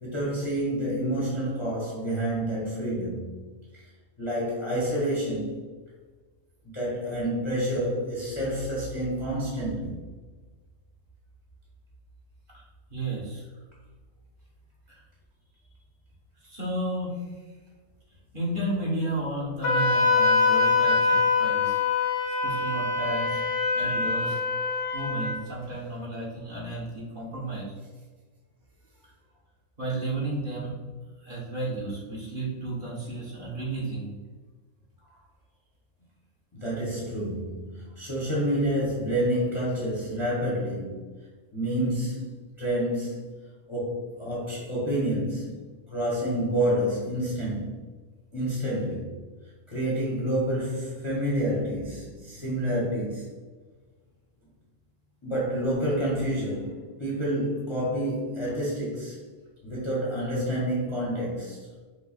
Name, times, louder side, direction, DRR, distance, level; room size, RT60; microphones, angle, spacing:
voice 1, 0.0-3.3 3.7-3.9 4.2-5.6 6.6-10.1 36.5-41.0 41.5-42.3 42.6-43.3 43.7-47.8 48.3-49.2 49.7-53.3 55.2-59.2 59.6-61.6, right 1 dB, 25° left, -6 dB, 0.9 m, -28 dB
voice 2, 12.9-13.4 14.9-15.0 16.4-17.3 18.3-21.8 22.4-23.4 23.7-24.4 24.9-27.6 29.8-30.7 31.2-34.1, right 1 dB, 40° right, -7 dB, 1.5 m, -32 dB
Wind instrument woodwind instrument, 19.6-25.4, left 4 dB, 65° left, 1.0 m, -24 dB
5.3 x 2.1 x 4.1 m, 1.3 s
omnidirectional pair, 1.5 m